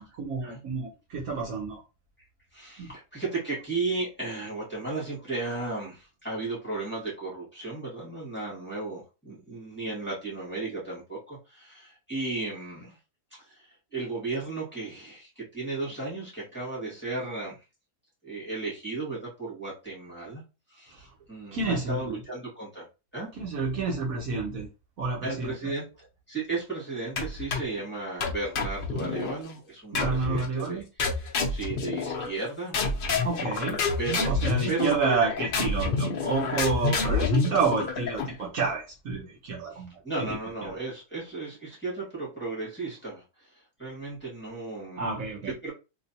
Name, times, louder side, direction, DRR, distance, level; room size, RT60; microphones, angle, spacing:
voice 1, 0.0-1.8 2.8-2.9 21.5-22.2 23.4-24.7 25.0-25.7 29.9-30.9 33.2-33.8 34.2-39.9 40.2-40.4 45.0-45.5, right 4 dB, 65° right, 1.2 m, -29 dB
voice 2, 2.5-13.0 13.3-17.6 18.2-20.4 20.7-22.9 23.1-23.3 25.2-30.8 31.2-33.2 34.0-34.3 34.7-35.2 39.7-45.1 45.5-45.7, right 3 dB, 5° left, 1.6 m, -35 dB
sound 1, 27.2-27.8 28.2-29.4 29.9-30.5 31.0-32.4 32.7-38.4, left 4 dB, 60° left, 0.5 m, -28 dB
3.2 x 2.9 x 2.7 m
omnidirectional pair, 1.7 m